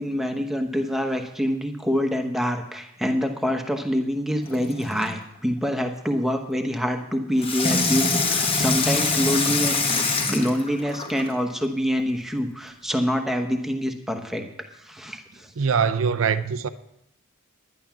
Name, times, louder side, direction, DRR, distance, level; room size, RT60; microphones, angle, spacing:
voice 1, 0.0-9.8 10.3-14.4 14.8-15.5, equal, ahead, 1.0 m, -26 dB
Water tap faucet / Sink (filling or washing), 4.4-5.1 7.4-11.3 12.0-12.1, left 3 dB, 25° left, 1.2 m, -24 dB
voice 2, 15.6-16.7, right 6 dB, 75° right, 0.6 m, -22 dB
11.0 x 10.5 x 5.9 m
head